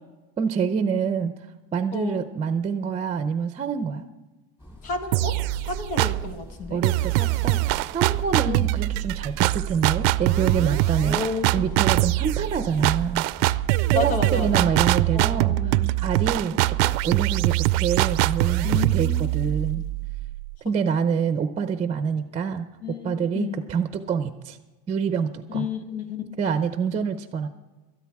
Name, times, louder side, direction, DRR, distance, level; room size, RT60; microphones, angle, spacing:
voice 1, 0.4-1.3 1.7-4.0 6.7-11.2 11.5-13.2 13.9-19.8 20.6-22.7 23.0-24.6 24.9-25.7 26.4-27.5, right 6 dB, 25° right, 9 dB, 0.6 m, -26 dB
voice 2, 1.9-2.3 4.8-6.8 8.3-8.7 11.0-11.7 13.9-14.6 15.1-15.9 18.6-19.3 22.8-23.7 25.5-26.4, left 5 dB, 85° left, 6 dB, 1.9 m, -32 dB
sound 1, 4.6-15.0, left 1 dB, 15° left, 3.7 m, -44 dB
sound 2, 5.1-6.3 6.8-20.5, right 18 dB, 85° right, 0.5 m, -23 dB
18.0 x 13.0 x 3.6 m, 1.2 s
cardioid pair, 140°, 29 cm